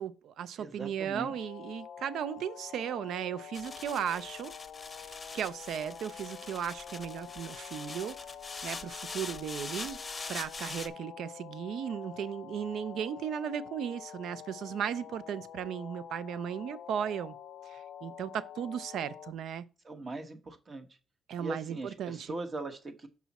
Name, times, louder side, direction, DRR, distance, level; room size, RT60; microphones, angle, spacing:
voice 1, 0.0-4.5 5.0-8.2 8.6-10.0 10.3-17.4 17.7-19.7 21.3-22.4, right 9 dB, 75° right, 0.5 m, -36 dB
voice 2, 0.6-1.3 19.8-21.0 21.4-23.1, right 2 dB, 40° right, 1.2 m, -40 dB
sound 1, 1.1-19.3, left 9 dB, 70° left, 0.5 m, -47 dB
sound 2, 3.5-10.9, left 4 dB, 30° left, 0.7 m, -43 dB
6.1 x 5.5 x 4.1 m
cardioid pair, 90°, 0 cm